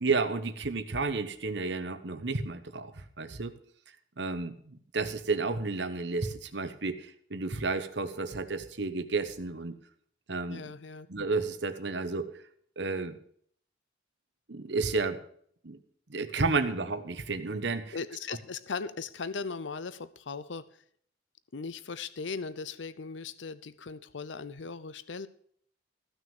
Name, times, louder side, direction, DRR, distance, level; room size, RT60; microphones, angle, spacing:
voice 1, 0.0-2.9 3.2-3.5 4.2-9.7 10.3-10.7 11.1-12.3 12.8-13.2 14.5-15.2 15.6-15.8 16.1-17.9, right 3 dB, 65° right, 10 dB, 1.1 m, -31 dB
voice 2, 10.5-11.1 17.9-20.6 21.5-25.3, left 4 dB, 70° left, 14 dB, 0.7 m, -38 dB
15.0 x 6.2 x 7.3 m, 0.62 s
head